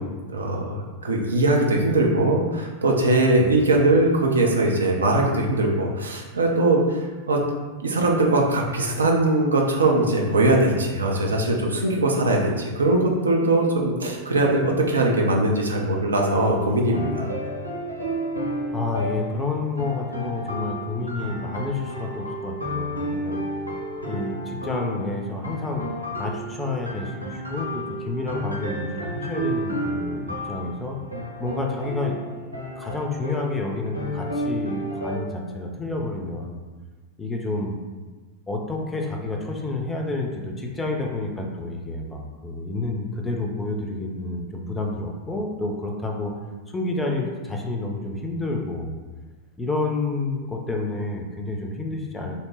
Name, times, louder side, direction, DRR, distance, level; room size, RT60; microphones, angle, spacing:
voice 1, 0.0-7.4 7.8-17.4, right 2 dB, 75° right, 0 dB, 0.4 m, -21 dB
sound 1, 16.2-35.2, equal, 90° left, 0.5 m, -32 dB
voice 2, 18.7-23.4 24.1-31.0 31.4-32.2 32.8-36.6 37.2-37.8 38.5-46.3 46.7-48.9 49.6-52.4, left 2 dB, 10° left, 1 dB, 0.4 m, -29 dB
2.7 x 2.1 x 3.1 m, 1.3 s
figure-of-eight pair, 90°, 0 cm